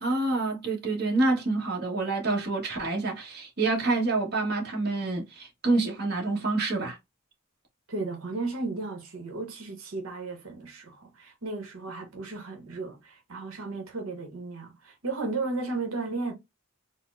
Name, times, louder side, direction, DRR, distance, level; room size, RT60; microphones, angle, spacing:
voice 1, 0.0-7.0, right 3 dB, 50° right, 1.1 m, -27 dB
voice 2, 7.9-16.3, right 3 dB, 80° right, 1.0 m, -34 dB
4.2 x 2.0 x 2.4 m
head